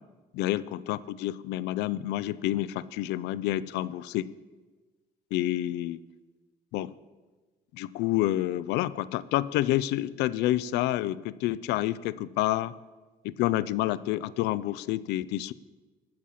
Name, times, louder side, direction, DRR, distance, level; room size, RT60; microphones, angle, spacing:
voice 1, 0.3-4.2 5.3-6.0 6.7-6.9 7.7-12.7 13.2-15.5, left 15 dB, 85° left, 18 dB, 0.4 m, -28 dB
12.0 x 8.5 x 5.7 m, 1.3 s
cardioid pair, 110°, 17 cm